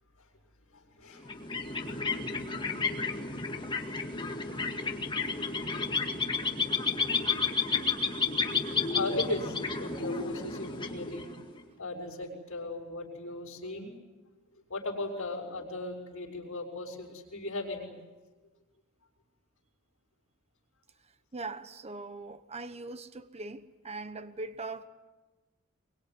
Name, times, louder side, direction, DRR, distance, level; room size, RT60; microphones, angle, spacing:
voice 1, 0.7-1.3 1.6-2.3 8.7-11.3 11.8-13.9 14.7-17.9, left 2 dB, 65° left, 5.8 m, -37 dB
sound 1, 1.2-11.6, left 4 dB, 20° left, 2.1 m, -32 dB
voice 2, 21.3-24.9, right 3 dB, 30° right, 1.0 m, -41 dB
24.5 x 23.5 x 9.7 m
head